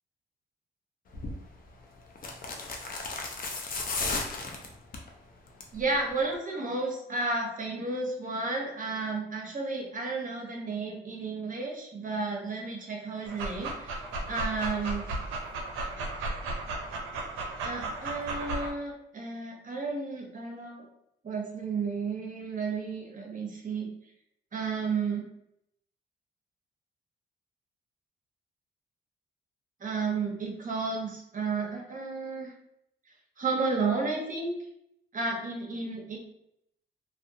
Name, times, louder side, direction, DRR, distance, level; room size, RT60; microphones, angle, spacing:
sound 1, 1.1-1.4 2.2-5.1 5.5-5.8 6.1-6.2, left 3 dB, 45° left, 0.6 m, -34 dB
voice 1, 5.7-14.0 14.3-15.0 17.6-20.9 21.2-23.9 24.5-25.2 29.8-32.5 33.4-34.6 35.1-36.2, right 4 dB, 40° right, 0 dB, 0.8 m, -32 dB
Dog, 13.3-18.7, right 2 dB, 90° right, 0.5 m, -35 dB
2.4 x 2.2 x 2.7 m, 0.79 s
supercardioid pair, 50°, 20 cm